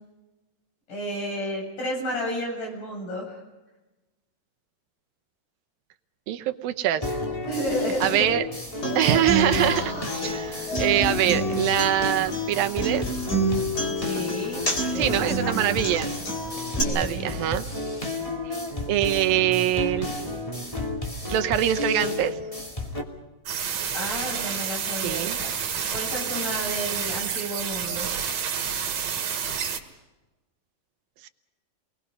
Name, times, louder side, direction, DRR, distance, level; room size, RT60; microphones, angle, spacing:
voice 1, 0.9-3.4 7.4-8.3 14.0-15.6 16.8-17.5 23.9-28.1, equal, 60° left, 0 dB, 9.4 m, -32 dB
voice 2, 6.3-7.2 8.0-8.5 9.0-13.1 14.9-16.1 16.9-17.6 18.5-18.6 18.9-20.1 21.3-22.4 25.0-25.4 31.2-31.3, right 12 dB, 80° right, 9 dB, 2.7 m, -24 dB
sound 1, 7.0-23.0, left 1 dB, 10° left, 2.4 m, -32 dB
Human voice / Acoustic guitar, 8.8-16.8, equal, 25° left, 3.5 m, -28 dB
sound 2, 23.5-29.8, right 7 dB, 65° right, 3.3 m, -29 dB
30.0 x 21.5 x 5.5 m, 1.1 s
omnidirectional pair, 4.1 m